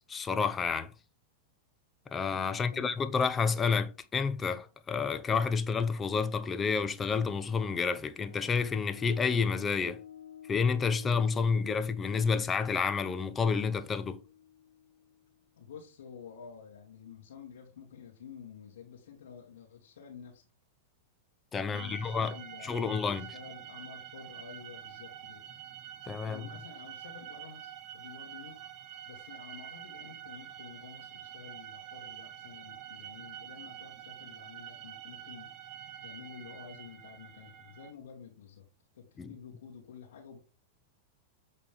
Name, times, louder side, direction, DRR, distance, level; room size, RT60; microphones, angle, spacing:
voice 1, 0.1-0.9 2.1-10.0 10.5-14.2 21.5-22.3 22.6-23.3 26.1-26.4 39.2-39.3, left 5 dB, 20° left, 0.8 m, -29 dB
voice 2, 2.4-2.9 15.6-20.5 21.6-25.5 26.2-28.6 29.1-35.5 36.0-38.6 38.9-40.4, left 7 dB, 80° left, 2.4 m, -50 dB
sound 1, 8.1-15.5, left 9 dB, 65° left, 2.1 m, -51 dB
sound 2, 21.7-37.9, right 10 dB, 40° right, 1.1 m, -47 dB
8.6 x 4.1 x 3.6 m
hypercardioid pair, 125°, 0 cm